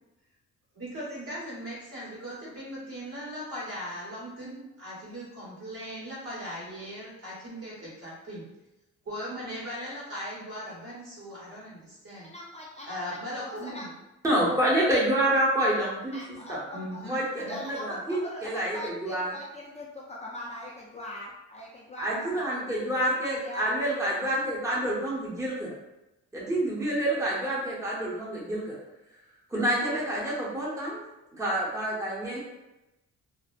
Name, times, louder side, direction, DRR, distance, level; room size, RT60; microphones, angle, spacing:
voice 1, 0.7-8.4 9.0-12.3 12.8-13.9 16.7-17.6, equal, 50° right, -7 dB, 1.4 m, -39 dB
voice 2, 12.2-13.2 13.4-13.9 16.1-17.1 17.4-22.5 23.4-23.7, left 1 dB, 25° left, -5 dB, 0.4 m, -41 dB
voice 3, 14.2-16.2 16.5-16.6 17.1-19.3 22.0-25.7 26.3-28.8 29.5-31.1 31.4-32.4, right 1 dB, 10° right, -6 dB, 0.8 m, -28 dB
2.7 x 2.0 x 2.4 m, 0.97 s
cardioid pair, 90°, 30 cm